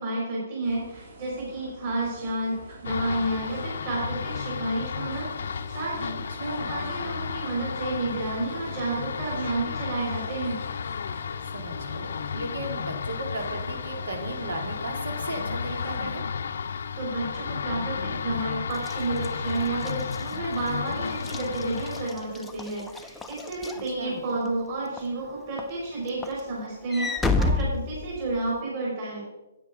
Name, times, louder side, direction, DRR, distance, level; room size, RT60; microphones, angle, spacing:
voice 1, 0.0-10.6 16.9-29.3, right 2 dB, 35° right, -5 dB, 3.3 m, -31 dB
sound 1, 0.6-16.0, right 2 dB, 50° right, 3.7 m, -47 dB
sound 2, 2.8-22.1, left 6 dB, 60° left, 0.5 m, -33 dB
voice 2, 6.1-6.8 11.5-16.2 24.0-24.2, right 1 dB, 90° right, 2 dB, 2.7 m, -35 dB
Walk footsteps / Slam, 18.7-24.5 25.0-25.2 25.6-28.6, left 3 dB, 5° left, 0.4 m, -31 dB
9.3 x 8.8 x 3.7 m, 1.0 s
hypercardioid pair, 165°, 0 cm